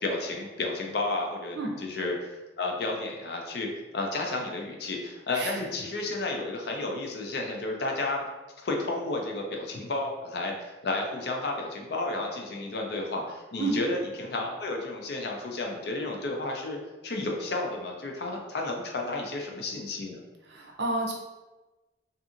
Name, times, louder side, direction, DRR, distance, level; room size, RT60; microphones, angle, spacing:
voice 1, 0.0-2.3 2.6-8.2 8.6-20.2, left 2 dB, 60° left, 1 dB, 0.4 m, -32 dB
voice 2, 5.3-5.7 13.6-13.8 20.5-21.1, right 2 dB, 65° right, 0 dB, 0.5 m, -30 dB
2.7 x 2.5 x 2.4 m, 1.2 s
head